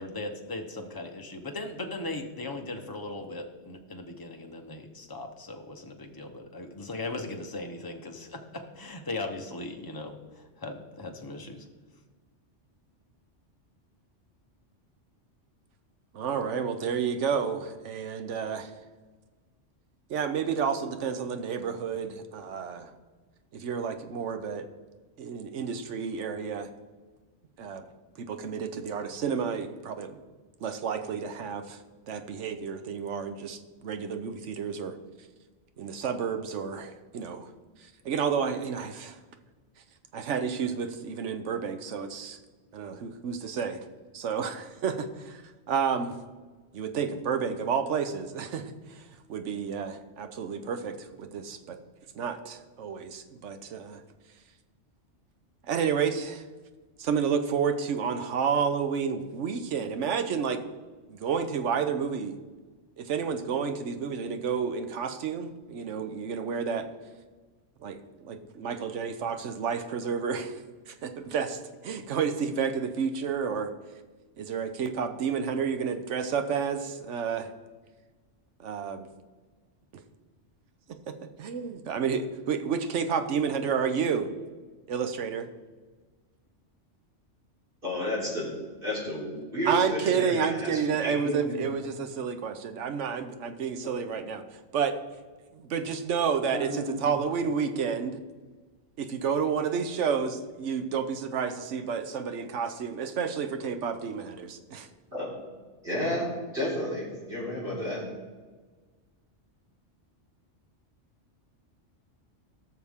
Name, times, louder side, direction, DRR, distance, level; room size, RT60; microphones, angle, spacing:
voice 1, 0.0-11.6, left 2 dB, 20° left, 3 dB, 0.9 m, -38 dB
voice 2, 16.1-18.7 20.1-22.9 23.5-24.7 25.2-26.7 27.6-27.8 28.2-30.1 30.6-34.9 35.8-37.5 37.8-39.2 40.1-42.4 42.7-43.8 44.1-46.1 46.7-51.8 52.1-54.0 55.7-56.4 57.0-60.6 61.1-62.3 63.0-66.9 67.8-73.7 74.4-77.5 78.6-79.1 81.1-81.2 81.4-84.3 84.9-85.5 89.7-94.9 95.5-98.2 99.0-104.9, right 6 dB, 75° right, 8 dB, 1.1 m, -30 dB
voice 3, 87.8-88.6 88.8-91.5 96.5-97.1 105.1-105.3 105.8-108.0, equal, 50° right, -6 dB, 4.0 m, -32 dB
17.5 x 6.5 x 3.6 m, 1.4 s
omnidirectional pair, 1.2 m